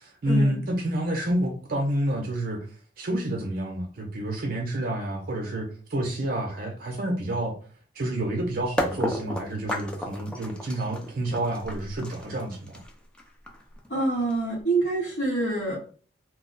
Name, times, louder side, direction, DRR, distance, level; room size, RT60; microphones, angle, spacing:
voice 1, 0.0-2.7 3.0-7.5 7.9-12.8, right 1 dB, 50° right, 0.5 m, -29 dB
sound 1, 8.8-14.6, left 1 dB, 5° left, 0.4 m, -33 dB
voice 2, 13.9-15.8, right 2 dB, 60° left, 1.0 m, -26 dB
2.2 x 2.1 x 3.8 m
head